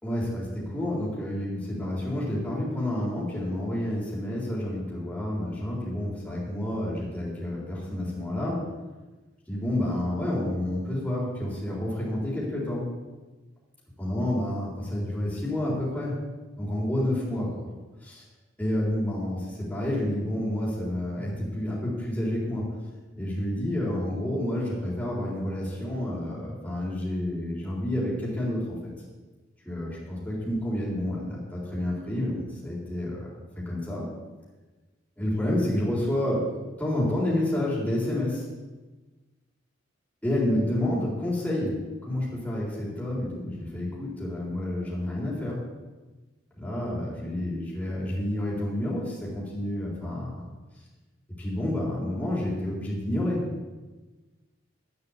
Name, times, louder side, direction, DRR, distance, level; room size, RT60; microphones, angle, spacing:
voice 1, 0.0-8.6 9.5-12.9 14.0-16.2 16.6-17.7 18.0-18.2 18.6-22.7 23.1-28.9 29.6-34.1 35.2-36.5 36.8-38.5 40.2-41.8 42.0-45.6 46.6-50.4 51.4-53.4, left 1 dB, 10° left, -7 dB, 4.0 m, -29 dB
13.5 x 7.0 x 8.4 m, 1.2 s
head